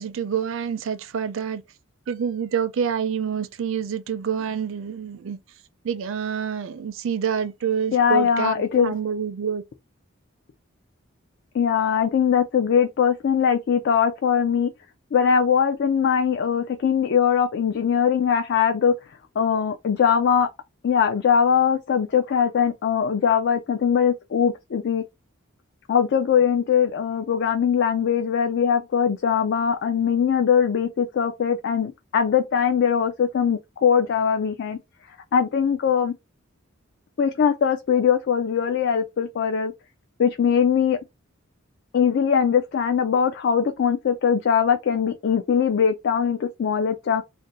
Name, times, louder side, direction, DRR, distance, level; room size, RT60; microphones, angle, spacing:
voice 1, 0.0-1.6 2.1-5.4 5.8-9.6, right 7 dB, 65° right, 0.4 m, -27 dB
voice 2, 7.9-8.9 11.5-14.7 15.1-18.9 19.4-20.5 20.8-25.0 25.9-34.8 35.3-36.1 37.2-39.7 40.2-41.0 41.9-47.2, left 7 dB, 55° left, 0.3 m, -21 dB
2.5 x 2.1 x 3.9 m
head